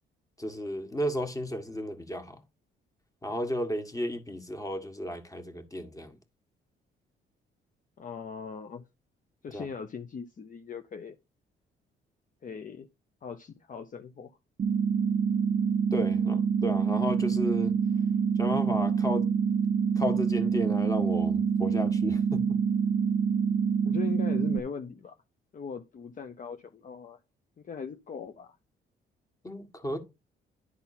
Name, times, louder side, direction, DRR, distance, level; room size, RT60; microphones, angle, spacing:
voice 1, 0.4-2.4 3.2-6.1 9.5-9.7 15.9-17.7 18.4-19.3 20.0-22.6 29.4-30.0, equal, 15° left, 1.7 m, -33 dB
voice 2, 8.0-8.8 9.4-11.2 12.4-12.9 13.2-14.3 23.8-25.2 25.5-27.2 27.6-28.6, left 6 dB, 40° left, 0.8 m, -40 dB
sound 1, 14.6-24.6, right 6 dB, 40° right, 0.5 m, -26 dB
11.0 x 4.0 x 4.3 m
cardioid pair, 90°, 20 cm